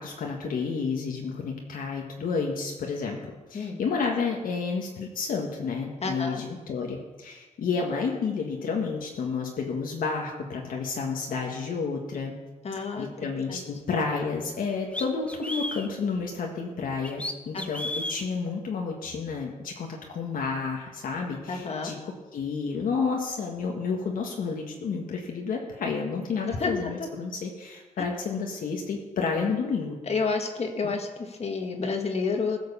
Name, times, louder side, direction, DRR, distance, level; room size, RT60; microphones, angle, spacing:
voice 1, 0.0-3.2 3.5-12.3 13.0-21.9 22.3-30.0 30.8-30.9, left 5 dB, 75° left, 0 dB, 1.7 m, -30 dB
voice 2, 6.0-6.4 12.6-13.1 13.5-13.6 17.5-17.7 21.5-21.9 26.6-26.7 27.0-27.1 30.1-32.6, left 4 dB, 45° left, 4 dB, 1.6 m, -29 dB
sound 1, 14.2-14.3 14.9-15.9 17.0-18.2, left 1 dB, 10° left, 1.0 m, -33 dB
16.0 x 6.5 x 6.9 m, 1.2 s
cardioid pair, 95°, 15 cm